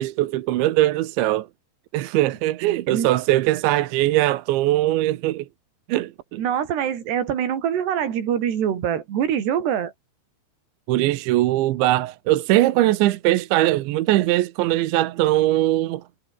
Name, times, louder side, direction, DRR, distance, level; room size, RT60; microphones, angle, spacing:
voice 1, 0.0-1.5 1.9-5.5 5.9-6.4 10.9-16.0, right 15 dB, 80° right, 3.3 m, -21 dB
voice 2, 6.4-9.9, right 9 dB, 65° right, 5.2 m, -24 dB
omnidirectional pair, 5.5 m